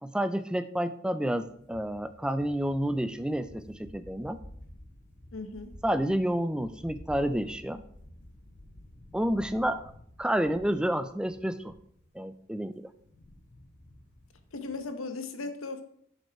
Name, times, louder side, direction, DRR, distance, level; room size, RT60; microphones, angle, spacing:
voice 1, 0.0-4.4 5.8-7.8 9.1-9.8 10.2-11.7 12.1-12.9, right 1 dB, 5° right, 12 dB, 0.3 m, -29 dB
sound 1, 1.4-14.9, left 1 dB, 55° left, 2.2 m, -52 dB
voice 2, 5.3-5.7 14.5-15.8, left 3 dB, 80° left, 8 dB, 0.9 m, -37 dB
7.4 x 5.4 x 4.6 m, 0.66 s
head